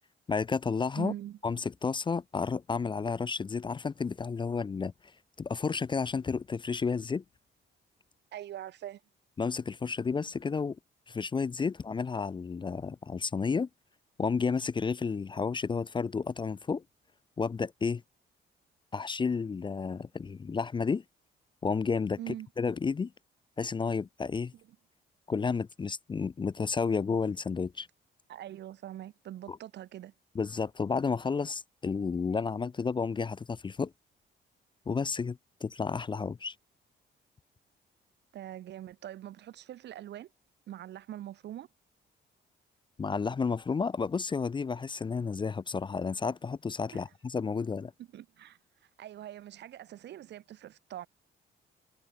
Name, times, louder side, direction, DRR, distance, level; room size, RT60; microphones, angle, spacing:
voice 1, 0.3-1.1 1.4-4.9 5.4-7.2 9.4-10.8 11.1-13.7 14.2-16.8 17.4-18.0 18.9-21.0 21.6-23.1 23.6-24.5 25.3-27.9 29.5-29.6 30.3-33.9 34.9-36.5 43.0-47.9, left 5 dB, 25° left, 0.4 m, -31 dB
voice 2, 1.0-1.4 8.3-9.0 22.2-22.5 28.3-30.1 38.3-40.3 40.7-41.7 46.9-47.0 48.0-48.6 49.0-51.1, right 12 dB, 60° right, 0.6 m, -43 dB
cardioid pair, 90°, 20 cm